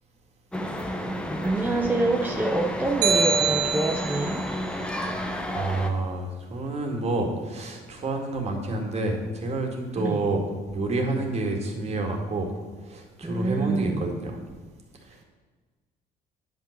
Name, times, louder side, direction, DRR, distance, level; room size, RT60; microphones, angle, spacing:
sound 1, 0.5-5.9, equal, 5° left, 1.1 m, -31 dB
voice 1, 1.4-4.5 9.9-10.2 13.2-14.1, right 2 dB, 10° right, 1 dB, 0.8 m, -27 dB
sound 2, 3.0-4.4, right 5 dB, 90° right, 1.3 m, -24 dB
voice 2, 5.1-12.5 12.8-14.4 15.0-15.2, right 2 dB, 40° right, 2 dB, 2.2 m, -29 dB
10.0 x 5.5 x 6.7 m, 1.4 s
cardioid pair, 110°, 17 cm